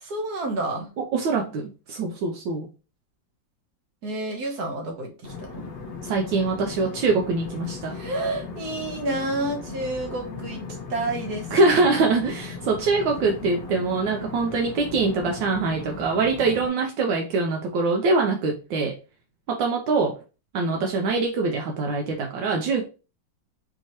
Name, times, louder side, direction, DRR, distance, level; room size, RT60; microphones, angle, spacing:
voice 1, 0.0-0.9 4.0-5.6 7.9-10.6 10.9-12.0, right 2 dB, 60° right, 2 dB, 1.3 m, -30 dB
voice 2, 1.1-2.7 6.0-8.0 11.5-19.0 19.5-20.2 20.5-22.8, right 3 dB, 75° right, 2 dB, 1.3 m, -23 dB
sound 1, 5.2-16.7, left 4 dB, 75° left, 0.5 m, -37 dB
4.5 x 2.8 x 2.9 m, 0.32 s
omnidirectional pair, 2.1 m